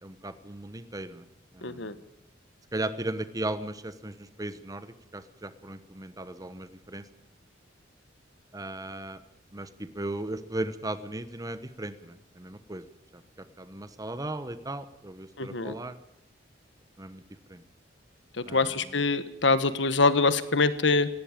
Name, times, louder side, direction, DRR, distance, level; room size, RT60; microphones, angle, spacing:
voice 1, 0.0-1.2 1.5-1.9 2.7-7.1 8.5-9.2 9.5-12.9 13.1-16.0 17.0-17.2 17.5-17.6 18.5-19.0, right 1 dB, 20° right, 12 dB, 1.1 m, -37 dB
voice 2, 1.6-1.9 15.4-15.7 18.5-21.1, left 3 dB, 70° left, 13 dB, 1.4 m, -24 dB
18.0 x 16.5 x 9.0 m, 0.85 s
head